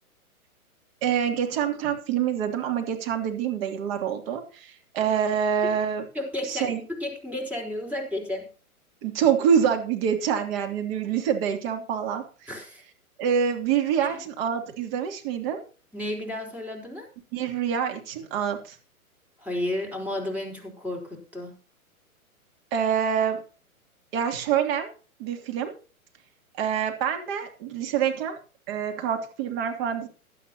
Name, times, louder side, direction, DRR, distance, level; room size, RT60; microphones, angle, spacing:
voice 1, 1.0-6.0 6.5-6.8 9.0-12.5 13.2-15.6 17.3-18.8 22.7-23.4 24.1-24.9 25.2-25.7 26.6-28.4 28.7-30.1, right 8 dB, 40° right, 5 dB, 3.0 m, -26 dB
voice 2, 6.1-8.5 12.5-12.8 14.0-14.1 15.9-17.1 19.4-21.5, left 1 dB, 5° right, 0 dB, 4.4 m, -32 dB
16.5 x 11.5 x 2.9 m, 0.36 s
figure-of-eight pair, 120°, 44 cm